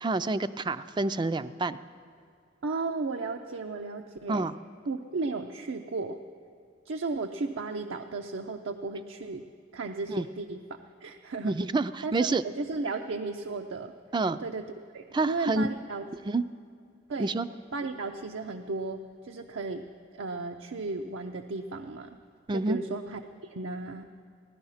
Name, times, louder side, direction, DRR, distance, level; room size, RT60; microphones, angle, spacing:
voice 1, 0.0-1.8 4.3-4.6 10.1-10.3 11.4-12.4 14.1-14.4 15.1-15.7 16.3-16.4 17.2-17.5 22.5-22.8, right 3 dB, 25° right, 14 dB, 0.3 m, -28 dB
voice 2, 2.6-4.5 4.9-6.2 6.9-9.5 9.7-11.6 12.0-13.9 14.4-14.6 14.9-16.1 17.1-17.3 17.7-19.8 20.1-22.2 22.5-24.0, right 3 dB, 80° right, 4 dB, 0.6 m, -34 dB
17.0 x 11.5 x 5.6 m, 2.3 s
head